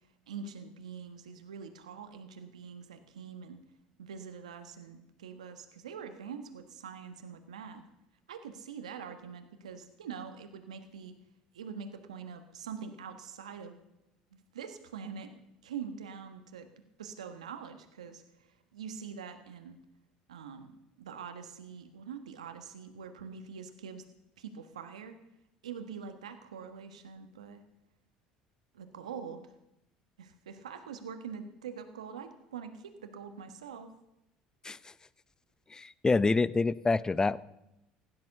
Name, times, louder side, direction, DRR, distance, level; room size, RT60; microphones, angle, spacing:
voice 1, 0.3-3.6 4.0-7.8 8.3-11.1 11.5-13.7 14.3-16.7 17.0-19.8 20.3-20.7 21.0-24.0 24.4-25.2 25.6-27.6 28.7-29.5 30.2-33.9, right 6 dB, 90° right, 7 dB, 1.4 m, -44 dB
voice 2, 35.7-37.4, left 3 dB, 20° left, 19 dB, 0.7 m, -27 dB
16.0 x 11.5 x 6.6 m, 0.87 s
hypercardioid pair, 70°, 3 cm